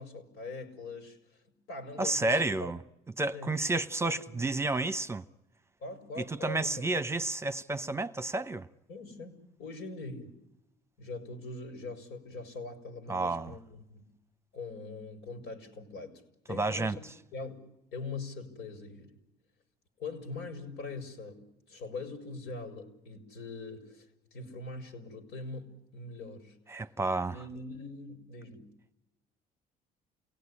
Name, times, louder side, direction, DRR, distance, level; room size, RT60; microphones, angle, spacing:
voice 1, 0.0-1.4 1.7-2.7 3.3-3.5 4.0-4.5 5.8-6.9 8.9-10.3 11.0-14.0 14.5-16.2 16.5-17.0 17.3-17.6 17.9-19.1 20.0-26.9 27.3-28.7, left 3 dB, 90° left, 5.3 m, -42 dB
voice 2, 2.0-2.8 3.2-5.2 6.2-8.7 13.1-13.5 16.5-17.0 26.7-27.4, right 2 dB, 15° right, 0.9 m, -31 dB
28.5 x 18.5 x 9.9 m
cardioid pair, 110°, 17 cm